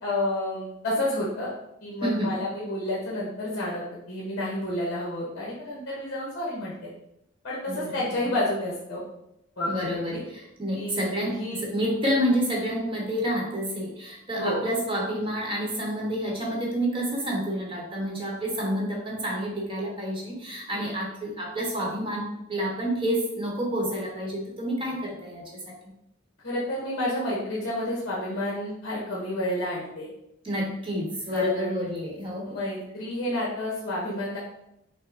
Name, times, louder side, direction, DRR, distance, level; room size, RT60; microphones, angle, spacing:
voice 1, 0.0-1.5 1.8-6.9 7.4-9.0 9.6-10.2 10.7-11.0 11.3-11.6 14.4-14.6 20.7-20.8 26.4-30.1 31.3-31.9 32.5-34.4, left 1 dB, 50° left, -4 dB, 1.0 m, -30 dB
voice 2, 2.0-2.4 7.7-8.2 9.7-25.7 30.4-32.6, equal, 25° right, -2 dB, 1.1 m, -29 dB
6.0 x 2.1 x 3.9 m, 0.82 s
head